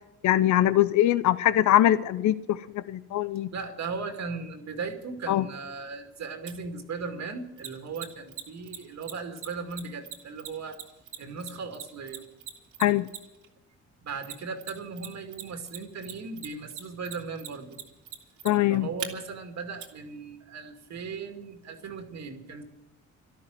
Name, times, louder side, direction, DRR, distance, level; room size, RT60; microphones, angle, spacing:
voice 1, 0.2-3.5 5.3-5.4 12.8-13.1 18.4-18.9, left 13 dB, 70° left, 15 dB, 0.7 m, -22 dB
voice 2, 3.5-10.8 11.2-12.3 14.0-17.8 18.7-22.6, right 4 dB, 60° right, 5 dB, 2.3 m, -37 dB
Mechanisms, 6.5-6.6 7.6-13.4 14.2-15.1 15.3-19.1 19.8-19.9, right 10 dB, 85° right, 2.5 m, -39 dB
13.0 x 12.5 x 7.7 m, 0.94 s
cardioid pair, 90°, 30 cm